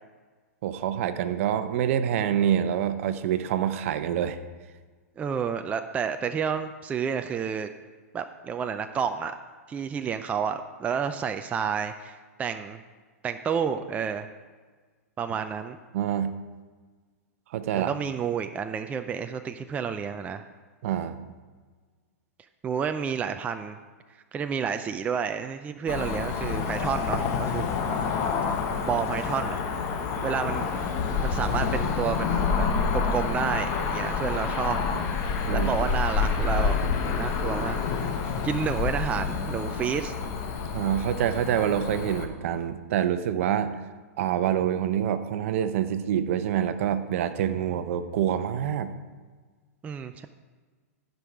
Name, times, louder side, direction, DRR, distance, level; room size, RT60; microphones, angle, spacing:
voice 1, 0.6-4.4 15.9-16.3 17.5-17.9 20.8-21.2 35.5-35.7 40.7-43.8 44.2-48.9, right 10 dB, 60° right, 11 dB, 0.8 m, -26 dB
voice 2, 5.2-7.7 8.1-9.3 9.7-12.8 13.2-14.3 15.2-15.8 17.8-20.4 22.6-23.8 24.3-27.7 28.8-29.6 30.2-30.7 31.2-32.7 32.9-34.8 35.5-37.8 38.2-40.1 49.8-50.3, right 7 dB, 15° right, 8 dB, 0.4 m, -30 dB
Cricket / Motor vehicle (road), 25.9-42.3, left 5 dB, 40° left, 1.2 m, -28 dB
14.0 x 5.4 x 4.7 m, 1.4 s
hypercardioid pair, 125°, 8 cm